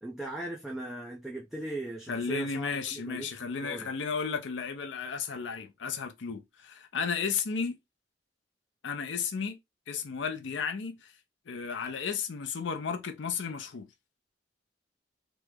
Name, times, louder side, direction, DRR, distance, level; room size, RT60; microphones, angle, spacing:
voice 1, 0.0-3.9, right 2 dB, ahead, 0.4 m, -39 dB
voice 2, 2.1-7.8 8.8-9.6 9.9-11.1 11.5-13.9, left 6 dB, 85° left, 0.5 m, -33 dB
3.0 x 2.0 x 3.4 m
head